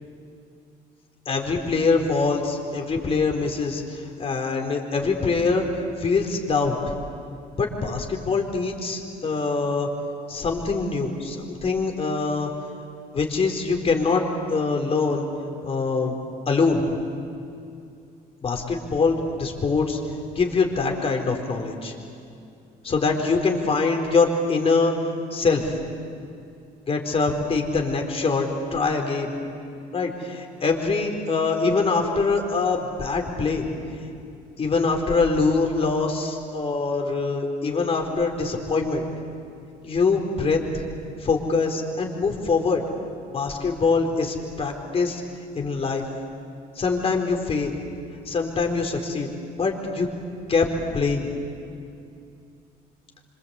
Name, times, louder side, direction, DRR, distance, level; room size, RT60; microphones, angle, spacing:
voice 1, 1.3-5.6 6.0-6.7 7.6-9.9 10.3-12.5 13.1-14.2 14.5-15.3 15.6-16.1 16.5-16.8 18.4-20.0 20.3-21.9 22.8-24.9 25.3-25.8 26.9-29.3 29.9-33.6 34.6-39.1 39.8-40.8 41.2-42.8 43.3-45.2 45.5-46.0 46.8-47.7 48.3-49.3 49.6-50.1 50.5-50.7 50.9-51.3, left 4 dB, 35° left, 2 dB, 4.4 m, -24 dB
26.5 x 26.0 x 8.4 m, 2.6 s
cardioid pair, 110°, 17 cm